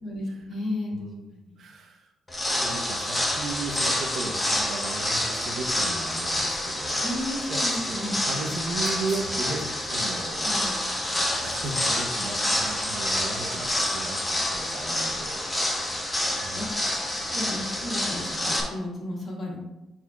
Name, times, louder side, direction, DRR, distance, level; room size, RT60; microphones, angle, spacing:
voice 1, 0.0-1.0 1.3-1.6 7.0-8.2 10.4-10.8 16.5-16.7 17.1-19.6, left 1 dB, 50° left, -2 dB, 2.1 m, -33 dB
voice 2, 0.9-1.3 1.6-2.0 2.6-7.1 7.5-10.8 11.4-16.1 16.4-16.6, right 3 dB, 65° right, 3 dB, 1.0 m, -36 dB
sound 1, 2.3-18.6, left 1 dB, 15° left, 1.3 m, -28 dB
9.3 x 4.3 x 2.4 m, 0.98 s
cardioid pair, 90°, 0 cm